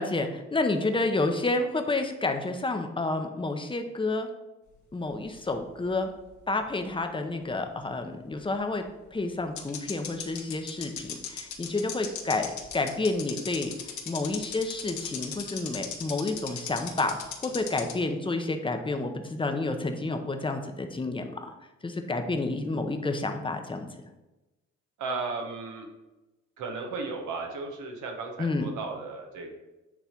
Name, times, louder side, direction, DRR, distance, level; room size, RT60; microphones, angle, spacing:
voice 1, 0.0-4.3 4.9-6.1 6.5-8.8 9.1-12.5 12.7-13.7 14.1-21.5 21.8-23.9 28.4-28.7, left 2 dB, 15° left, 5 dB, 0.9 m, -30 dB
sound 1, 5.1-6.6 6.9-7.0 8.8-8.9 9.6-17.9, left 8 dB, 70° left, 1.4 m, -37 dB
voice 2, 25.0-25.9 26.6-29.5, right 3 dB, 80° right, 2 dB, 1.3 m, -35 dB
8.4 x 3.3 x 5.8 m, 1.0 s
cardioid pair, 90°, 30 cm